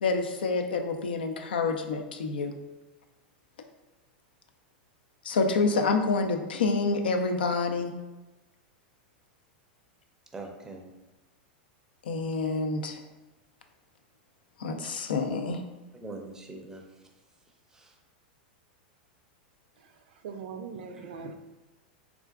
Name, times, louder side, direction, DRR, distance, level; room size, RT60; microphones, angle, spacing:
voice 1, 0.0-2.5 5.2-7.9 12.0-13.0 14.6-15.6, left 4 dB, 85° left, 5 dB, 0.4 m, -27 dB
voice 2, 10.3-10.9 16.0-18.0 20.9-21.2, right 3 dB, 10° right, 2 dB, 0.5 m, -44 dB
voice 3, 19.8-21.3, right 5 dB, 70° right, 6 dB, 0.4 m, -41 dB
3.6 x 2.4 x 2.3 m, 1.1 s
hypercardioid pair, 110°, 5 cm